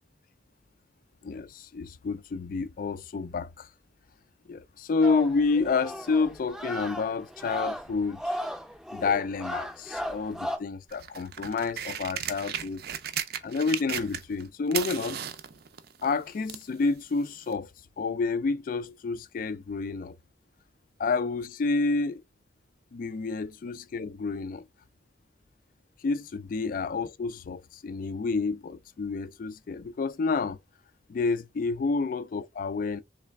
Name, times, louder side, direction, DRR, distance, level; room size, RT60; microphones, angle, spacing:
voice 1, 1.2-3.7 4.5-8.2 8.9-12.8 13.4-15.2 16.0-17.7 18.0-20.2 21.0-22.2 22.9-24.6 26.0-30.6 31.1-33.0, left 4 dB, 45° left, 0.3 m, -29 dB
sound 1, 5.0-10.6, equal, ahead, 0.5 m, -36 dB
sound 2, 10.9-14.4 14.7-16.7 17.5-17.6, right 9 dB, 55° right, 0.4 m, -35 dB
3.2 x 3.2 x 3.3 m
head